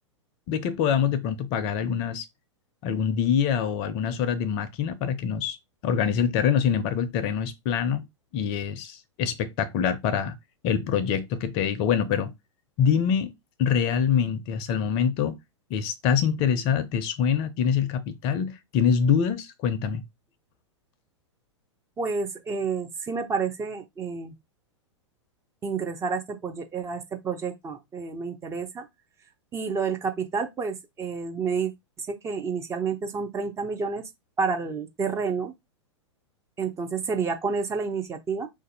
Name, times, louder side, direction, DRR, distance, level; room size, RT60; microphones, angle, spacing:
voice 1, 0.5-2.3 2.8-5.6 5.8-8.1 8.3-10.4 10.6-12.3 12.8-13.3 13.6-15.4 15.7-20.0, left 7 dB, 35° left, 0.5 m, -25 dB
voice 2, 22.0-24.4 25.6-28.9 29.5-31.7 32.1-34.0 34.4-35.5 36.6-38.5, right 5 dB, 20° right, 0.5 m, -29 dB
2.5 x 2.2 x 4.0 m
figure-of-eight pair, 100°, 16 cm